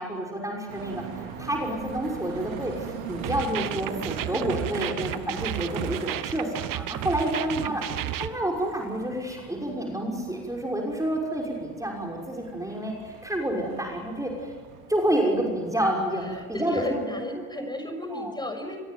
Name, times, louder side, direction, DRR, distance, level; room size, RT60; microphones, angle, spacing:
voice 1, 0.0-7.8 8.2-14.5 14.9-17.0 18.1-18.3, right 1 dB, 10° right, 0 dB, 6.1 m, -29 dB
sound 1, 0.7-17.0, right 6 dB, 80° right, 4.1 m, -41 dB
sound 2, 3.2-8.3, right 13 dB, 55° right, 1.4 m, -32 dB
voice 2, 7.3-7.8 16.2-18.8, left 1 dB, 10° left, 5 dB, 6.4 m, -35 dB
27.5 x 22.0 x 9.5 m, 1.5 s
hypercardioid pair, 65°, 40 cm